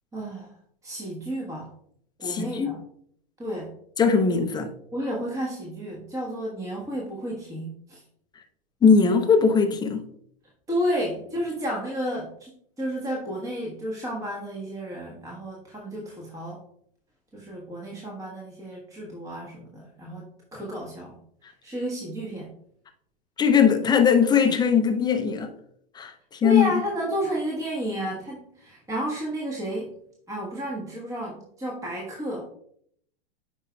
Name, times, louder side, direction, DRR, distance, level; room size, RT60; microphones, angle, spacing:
voice 1, 0.1-0.5 0.8-1.7 2.2-2.8 3.4-3.7 4.9-8.0 10.7-12.5 12.8-16.6 17.3-20.2 20.5-21.2 21.6-22.5 26.4-30.0 30.3-32.4, equal, 10° right, 1.3 m, -31 dB
voice 2, 2.2-2.7 4.0-4.7 8.8-10.0 23.4-25.5 26.0-26.1 26.4-26.7, left 6 dB, 15° left, 0.6 m, -20 dB
8.2 x 5.2 x 2.3 m
hypercardioid pair, 120°, 30 cm